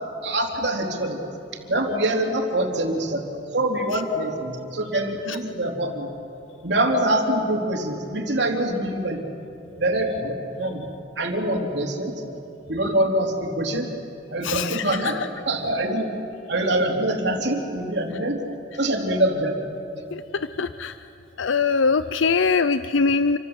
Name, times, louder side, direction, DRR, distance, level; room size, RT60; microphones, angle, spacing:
voice 1, 0.2-1.2 1.7-3.3 3.5-6.1 6.6-9.2 9.8-10.9 11.2-12.1 12.7-13.9 14.3-15.2 15.5-16.1 16.5-18.4 18.8-19.5, right 1 dB, 60° right, 2 dB, 3.5 m, -24 dB
voice 2, 14.4-15.3 20.1-21.0 21.4-23.4, left 4 dB, 80° left, 12 dB, 0.6 m, -23 dB
29.0 x 25.0 x 8.0 m, 2.8 s
head